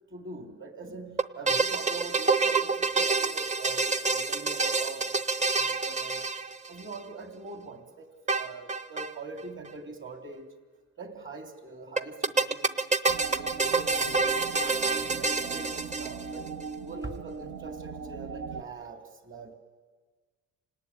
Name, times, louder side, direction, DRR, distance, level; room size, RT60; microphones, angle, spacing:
voice 1, 0.1-5.1 5.4-6.2 6.7-10.5 11.0-12.9 13.3-16.6 16.8-19.5, right 3 dB, 40° right, 5 dB, 3.6 m, -43 dB
sound 1, 1.2-7.0 8.3-9.1 9.4-9.5 9.7-9.8 12.0-16.5, right 4 dB, 25° right, 0.9 m, -27 dB
sound 2, 13.1-18.6, right 5 dB, 70° right, 1.6 m, -39 dB
27.5 x 18.5 x 9.8 m, 1.5 s
cardioid pair, 90°, 30 cm